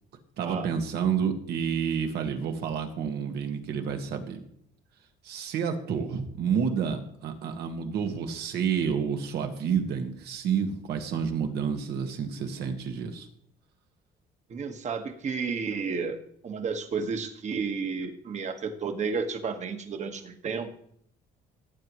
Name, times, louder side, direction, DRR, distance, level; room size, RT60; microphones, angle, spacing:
voice 1, 0.4-4.4 5.2-13.3, right 7 dB, 75° right, 5 dB, 1.8 m, -29 dB
voice 2, 14.5-16.2 16.4-20.7, right 5 dB, 45° right, 6 dB, 1.5 m, -32 dB
17.5 x 8.4 x 3.1 m, 0.67 s
cardioid pair, 110°, 17 cm